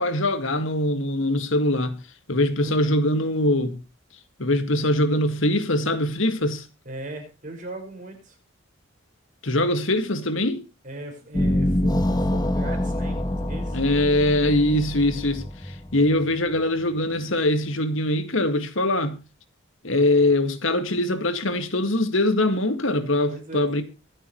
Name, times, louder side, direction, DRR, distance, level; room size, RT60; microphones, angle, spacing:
voice 1, 0.0-2.0 2.3-3.8 4.4-6.7 9.4-10.6 13.7-19.2 19.8-23.8, left 1 dB, 70° left, 2.0 m, -22 dB
voice 2, 6.8-8.4 10.8-13.8 23.3-23.8, right 2 dB, 40° right, 5.4 m, -38 dB
sound 1, 11.3-16.6, left 1 dB, 20° left, 1.9 m, -26 dB
24.0 x 8.8 x 3.1 m
head